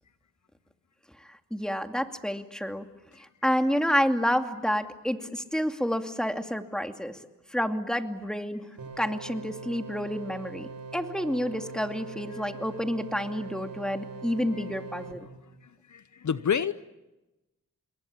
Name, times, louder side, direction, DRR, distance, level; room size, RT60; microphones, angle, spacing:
voice 1, 1.2-2.8 3.2-7.2 7.5-8.7 9.0-15.3, equal, ahead, 6 dB, 2.5 m, -29 dB
sound 1, 8.8-15.1, right 4 dB, 75° right, 4.3 m, -42 dB
voice 2, 15.6-16.7, left 7 dB, 60° left, 14 dB, 0.9 m, -30 dB
28.5 x 22.0 x 8.8 m, 1.0 s
cardioid pair, 60°, 33 cm